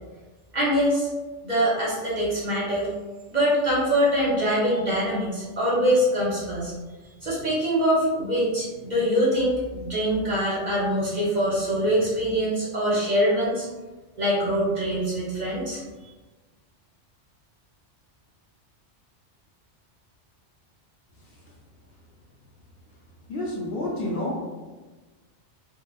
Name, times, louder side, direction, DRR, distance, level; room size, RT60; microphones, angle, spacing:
voice 1, 0.5-1.1 1.4-2.9 3.3-6.7 7.2-13.7 14.2-16.1, equal, 50° right, -7 dB, 0.6 m, -24 dB
voice 2, 23.3-24.4, left 1 dB, 60° left, -3 dB, 0.7 m, -29 dB
2.8 x 2.1 x 2.3 m, 1.2 s
omnidirectional pair, 1.2 m